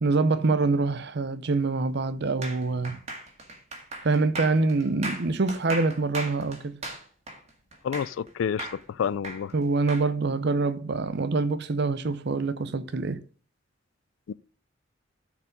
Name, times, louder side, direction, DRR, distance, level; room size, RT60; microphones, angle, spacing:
voice 1, 0.0-3.0 4.0-6.8 9.5-13.2, right 3 dB, 55° right, 0.6 m, -25 dB
sound 1, 2.4-8.3 8.6-10.1, right 2 dB, 35° right, 1.9 m, -37 dB
voice 2, 7.8-9.5 14.3-14.4, left 7 dB, 70° left, 0.3 m, -29 dB
13.5 x 4.7 x 5.2 m
head